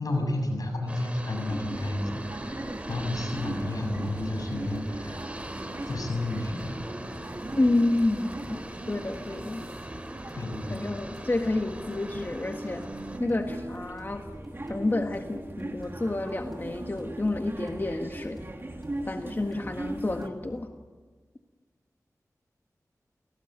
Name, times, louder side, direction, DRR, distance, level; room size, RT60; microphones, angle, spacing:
voice 1, 0.0-5.3 5.9-6.8 10.3-10.9, left 1 dB, 80° left, 4 dB, 7.5 m, -31 dB
sound 1, 0.9-13.2, right 1 dB, 20° right, 3.3 m, -41 dB
sound 2, 1.4-20.3, right 1 dB, 40° right, 2.8 m, -40 dB
sound 3, 2.5-20.6, equal, ahead, 6.1 m, -48 dB
voice 2, 7.6-8.6 8.9-9.7 10.7-12.9 13.2-14.3 14.7-18.4 19.1-20.7, left 2 dB, 35° left, 4 dB, 1.6 m, -29 dB
29.0 x 19.0 x 9.0 m, 1.4 s
wide cardioid pair, 70°, 6 cm